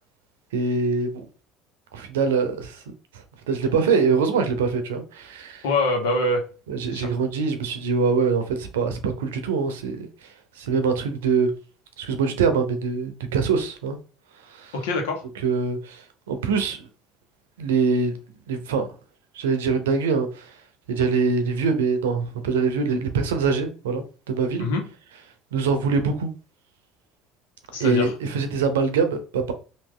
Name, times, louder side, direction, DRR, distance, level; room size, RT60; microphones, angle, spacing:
voice 1, 0.5-1.3 1.9-2.8 3.5-5.6 6.7-11.5 12.0-14.0 14.5-14.7 15.4-16.9 17.6-18.2 18.5-18.9 19.3-20.6 20.9-24.7 25.5-26.3 27.8-29.5, right 5 dB, 90° right, 0.6 m, -24 dB
voice 2, 5.6-6.4 6.9-7.1 14.7-15.2 24.6-24.8 27.7-28.1, left 2 dB, 85° left, 1.0 m, -24 dB
3.1 x 2.6 x 3.7 m
hypercardioid pair, 80°, 0 cm